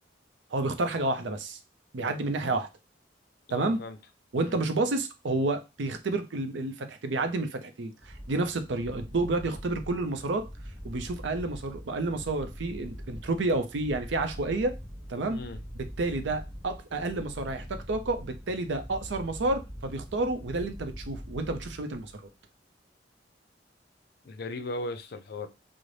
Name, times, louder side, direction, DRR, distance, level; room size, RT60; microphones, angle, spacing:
voice 1, 0.5-1.6 1.9-2.7 3.5-3.8 4.3-10.5 10.8-14.7 15.1-15.4 16.0-22.1, right 2 dB, 80° right, 0.5 m, -30 dB
voice 2, 3.5-4.0 4.3-4.6 15.3-15.6 24.2-25.5, left 2 dB, 55° left, 0.4 m, -37 dB
sound 1, 8.0-22.2, equal, 5° left, 0.8 m, -43 dB
3.9 x 2.0 x 3.2 m
head